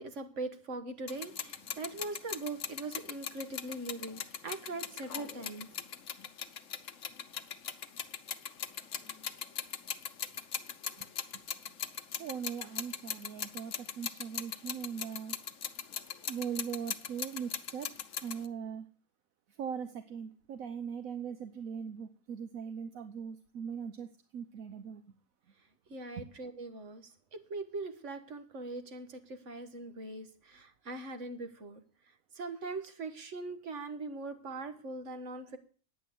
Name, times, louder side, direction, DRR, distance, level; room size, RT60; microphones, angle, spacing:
voice 1, 0.0-5.7 25.9-31.8 32.4-35.6, right 2 dB, 60° right, 8 dB, 1.7 m, -41 dB
sound 1, 1.1-18.5, left 8 dB, 65° left, 1.2 m, -40 dB
voice 2, 12.2-15.4 16.3-17.9 18.2-18.9 19.5-25.2 26.2-26.3, right 7 dB, 75° right, 9 dB, 1.3 m, -40 dB
11.0 x 9.2 x 7.8 m, 0.43 s
omnidirectional pair, 1.5 m